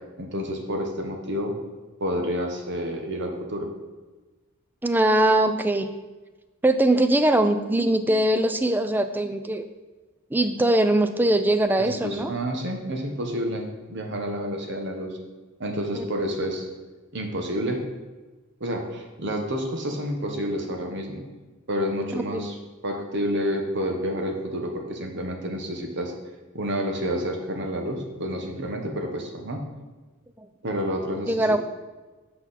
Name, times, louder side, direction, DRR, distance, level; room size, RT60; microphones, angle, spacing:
voice 1, 0.2-1.5 2.0-3.7 11.8-15.2 15.6-16.7 17.1-17.8 18.6-21.2 21.7-22.5 22.8-26.1 26.5-29.6 30.6-31.6, equal, 55° right, 3 dB, 1.1 m, -29 dB
voice 2, 4.8-5.9 6.6-9.7 10.3-12.3 15.9-16.0 22.3-22.4 30.4-30.5 31.3-31.6, right 1 dB, 10° right, 9 dB, 0.3 m, -21 dB
8.2 x 5.9 x 4.1 m, 1.2 s
head